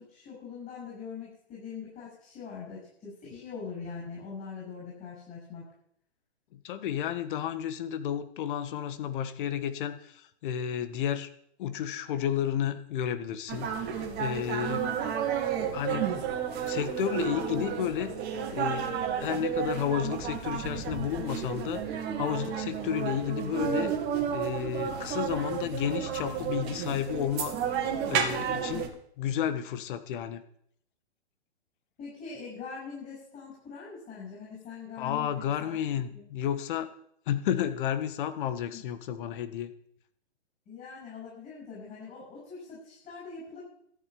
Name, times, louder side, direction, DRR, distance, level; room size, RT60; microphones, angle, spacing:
voice 1, 0.0-5.6 32.0-35.8 36.1-36.2 38.7-38.8 40.7-43.6, left 5 dB, 25° left, -5 dB, 7.5 m, -42 dB
voice 2, 6.5-11.3 11.6-14.9 15.7-16.1 16.6-18.1 18.5-23.9 24.3-27.5 28.1-28.9 29.2-30.4 35.0-36.9 37.3-39.7, left 9 dB, 50° left, 11 dB, 1.6 m, -32 dB
sound 1, 13.5-28.9, right 8 dB, 30° right, 2.4 m, -32 dB
13.5 x 7.7 x 8.7 m, 0.68 s
hypercardioid pair, 125°, 33 cm